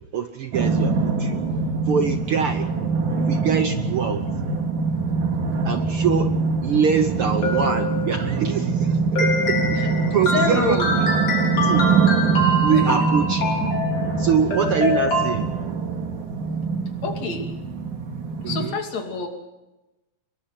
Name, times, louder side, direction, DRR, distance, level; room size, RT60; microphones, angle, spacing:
voice 1, 0.1-1.4 1.9-2.7 3.2-4.2 5.6-6.3 6.6-10.8 11.6-11.9 12.6-13.5 14.2-15.6 18.4-18.7, right 6 dB, 60° right, 8 dB, 1.5 m, -24 dB
sound 1, 0.5-18.7, right 4 dB, 90° right, 4.2 m, -24 dB
sound 2, 7.1-8.4 9.2-15.3, left 1 dB, 45° left, 5.0 m, -25 dB
voice 2, 10.3-11.0 12.7-12.9 14.0-14.1 17.0-17.5 18.5-19.3, left 4 dB, 65° left, 3 dB, 3.9 m, -27 dB
24.0 x 22.0 x 6.0 m, 1.0 s
omnidirectional pair, 3.4 m